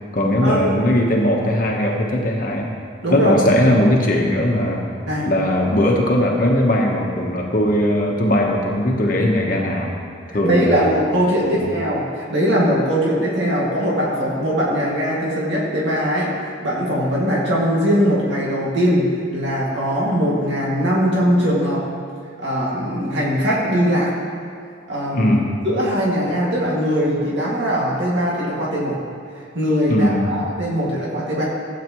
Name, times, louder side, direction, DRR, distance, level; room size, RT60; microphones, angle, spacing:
voice 1, 0.1-2.7 3.1-4.9 5.3-9.9 10.3-10.9 11.4-11.7 25.1-25.5 29.9-30.4, left 1 dB, 45° left, -1 dB, 1.1 m, -19 dB
voice 2, 3.0-3.3 3.7-3.8 5.1-5.3 10.3-19.1 19.3-21.8 22.4-24.1 24.9-25.3 25.6-29.0 29.5-31.5, equal, 70° right, -5 dB, 2.2 m, -20 dB
16.0 x 8.6 x 3.1 m, 2.4 s
head